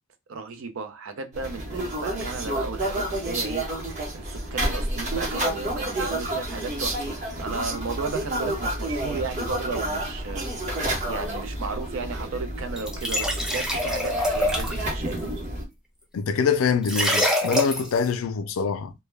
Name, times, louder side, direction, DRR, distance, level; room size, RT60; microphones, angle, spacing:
voice 1, 0.3-3.6 4.1-10.5 11.1-15.2, right 4 dB, 70° right, 0.5 m, -34 dB
sound 1, 1.3-15.6, right 1 dB, 35° right, 0.8 m, -30 dB
sound 2, 12.8-14.9 16.8-18.0, left 1 dB, 5° right, 0.4 m, -25 dB
voice 2, 16.1-18.9, left 6 dB, 80° left, 0.4 m, -24 dB
2.1 x 2.1 x 3.1 m
head